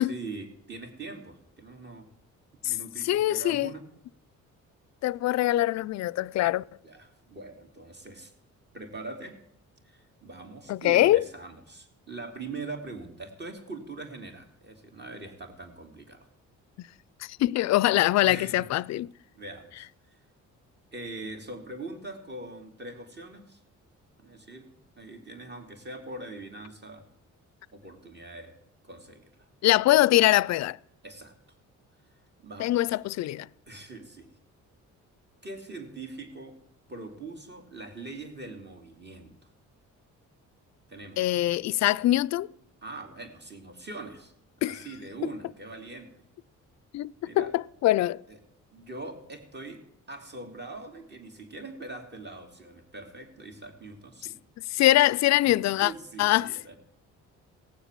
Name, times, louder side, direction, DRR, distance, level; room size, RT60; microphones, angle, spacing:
voice 1, 0.0-2.1 2.6-3.8 6.8-8.3 8.7-9.4 9.8-16.3 18.2-18.9 19.3-20.2 20.9-23.6 24.2-24.7 25.0-27.1 27.7-28.5 28.8-29.5 31.0-31.3 32.4-33.0 33.7-34.3 35.4-36.6 36.9-39.5 40.9-41.3 42.8-44.3 44.6-46.1 47.2-47.5 48.3-48.4 48.7-49.8 50.1-54.4 55.4-55.5 55.8-56.8, right 3 dB, 35° right, 2.9 m, -42 dB
voice 2, 3.0-3.7 5.0-6.6 10.7-11.2 16.8-16.9 17.2-19.1 29.6-30.8 32.6-33.5 41.2-42.5 44.6-44.8 46.9-48.2 54.7-55.9 56.2-56.5, left 15 dB, 60° left, 0.4 m, -23 dB
18.0 x 7.1 x 7.5 m
cardioid pair, 90°, 30 cm